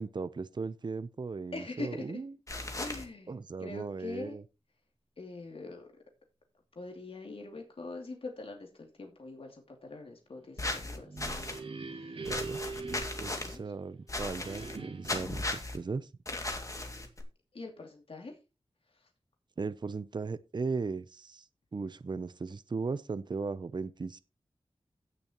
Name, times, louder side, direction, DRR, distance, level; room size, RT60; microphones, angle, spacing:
voice 1, 0.0-2.3 3.3-4.4 12.3-12.6 13.2-16.1 19.6-21.4 21.7-24.2, right 4 dB, 45° right, 0.6 m, -37 dB
voice 2, 1.5-2.1 2.7-4.4 5.2-5.9 6.7-11.6 11.9-12.3 13.3-13.6 17.5-18.4 18.9-19.1, left 3 dB, 65° left, 2.7 m, -43 dB
sound 1, 2.5-3.0 10.6-11.6 12.3-13.6 14.1-14.8 15.0-15.8 16.3-17.2, left 2 dB, 30° left, 2.3 m, -36 dB
sound 2, 11.0-13.9 14.4-15.4, right 3 dB, 65° right, 2.1 m, -42 dB
16.5 x 6.9 x 3.0 m
wide cardioid pair, 90°, 10 cm